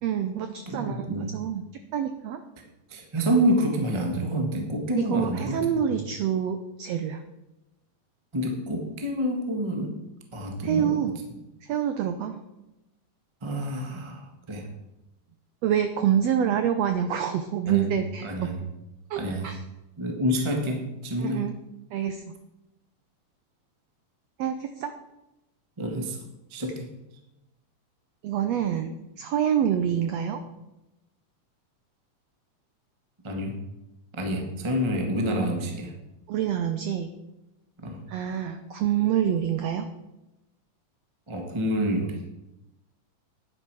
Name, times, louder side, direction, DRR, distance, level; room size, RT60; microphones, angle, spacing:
voice 1, 0.0-1.6 1.9-2.4 5.0-7.2 10.6-11.1 11.6-12.4 15.6-18.5 19.1-19.6 21.2-21.5 21.9-22.2 24.4-24.9 28.2-30.4 36.3-37.1 38.1-39.9, right 9 dB, 85° right, 8 dB, 1.4 m, -26 dB
voice 2, 0.7-1.3 2.9-5.8 8.3-10.0 10.3-11.1 13.4-14.7 17.7-17.9 18.2-18.6 19.2-19.5 20.0-21.4 25.8-26.2 26.5-26.9 33.2-33.6 34.1-35.9 37.8-38.0 41.3-42.2, equal, 50° right, 2 dB, 0.3 m, -28 dB
10.0 x 9.9 x 4.7 m, 0.96 s
omnidirectional pair, 3.8 m